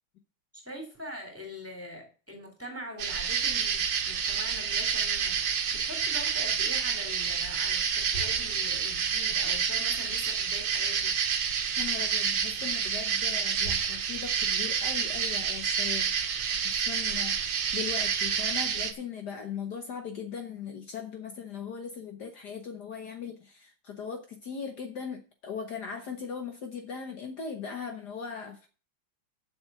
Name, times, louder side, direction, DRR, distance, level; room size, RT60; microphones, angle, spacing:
voice 1, 0.5-11.2, equal, 5° right, 3 dB, 3.3 m, -43 dB
sound 1, 3.0-18.9, right 7 dB, 65° right, 1.8 m, -29 dB
voice 2, 11.8-16.1 16.5-28.7, left 6 dB, 60° left, 6 dB, 1.6 m, -39 dB
8.0 x 6.6 x 7.9 m, 0.35 s
omnidirectional pair, 2.2 m